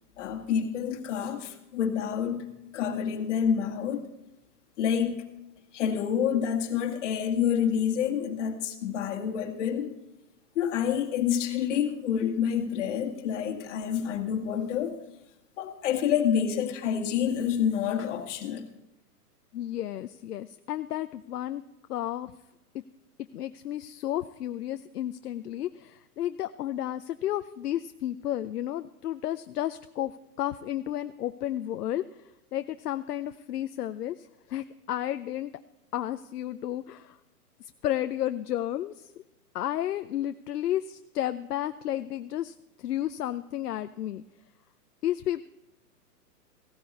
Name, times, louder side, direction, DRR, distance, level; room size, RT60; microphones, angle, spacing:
voice 1, 0.2-2.5 2.7-4.0 4.8-5.2 5.7-10.0 10.6-14.9 15.6-18.6, left 8 dB, 45° left, 1.9 m, -28 dB
voice 2, 19.5-21.6 21.9-22.3 23.3-35.5 35.9-37.2 37.6-39.2 39.5-44.2 45.0-45.4, left 12 dB, 70° left, 0.6 m, -32 dB
16.0 x 13.0 x 4.1 m
hypercardioid pair, 135°, 48 cm